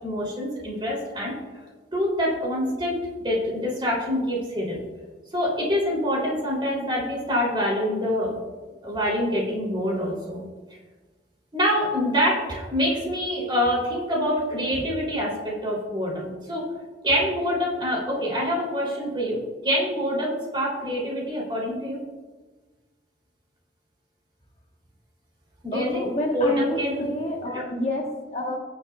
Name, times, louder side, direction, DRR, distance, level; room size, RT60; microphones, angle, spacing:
voice 1, 0.0-1.6 1.9-4.8 5.3-8.4 8.8-10.4 11.5-16.6 17.0-22.0 25.6-26.0 26.3-27.1 27.5-27.7, equal, 25° right, -4 dB, 3.2 m, -26 dB
voice 2, 25.7-28.6, left 1 dB, 35° left, -1 dB, 1.3 m, -28 dB
19.0 x 7.1 x 2.4 m, 1.3 s
head